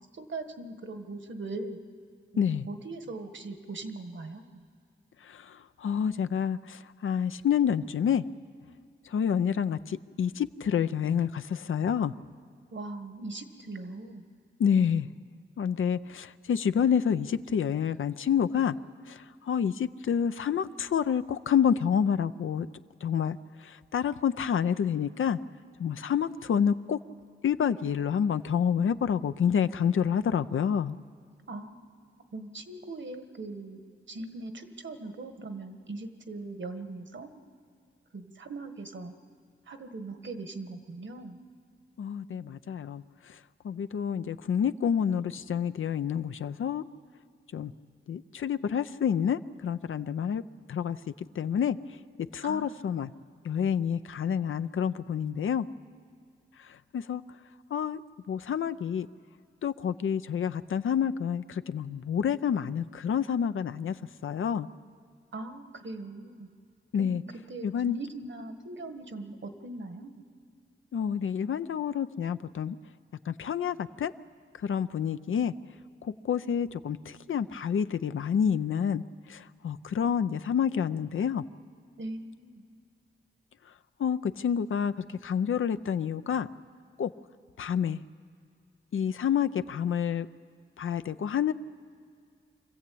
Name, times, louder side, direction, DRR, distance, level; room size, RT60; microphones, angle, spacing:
voice 1, 0.0-1.8 2.3-4.7 12.7-14.2 31.5-33.8 34.1-37.3 38.1-39.1 39.7-41.4 52.4-52.7 53.2-53.4 65.3-66.5 67.0-67.2 67.5-70.2 82.0-82.6, right 2 dB, 65° right, 8 dB, 1.6 m, -40 dB
voice 2, 2.4-2.7 5.2-8.2 9.1-12.1 14.6-15.1 15.6-18.8 19.1-22.7 23.0-25.4 25.8-27.0 27.4-31.0 42.0-43.4 43.6-46.8 47.5-47.7 48.1-50.4 50.7-51.0 51.4-52.0 52.3-53.1 53.4-55.7 56.6-57.2 57.7-58.0 58.3-59.1 59.6-64.0 64.2-64.7 66.9-67.2 67.6-68.0 70.9-72.8 73.3-74.1 74.6-75.5 76.0-81.4 84.0-84.9 85.2-86.5 87.0-87.1 87.6-88.0 88.9-90.3 90.8-91.5, left 8 dB, 80° left, 12 dB, 0.6 m, -28 dB
25.5 x 14.5 x 8.5 m, 2.2 s
cardioid pair, 60°, 21 cm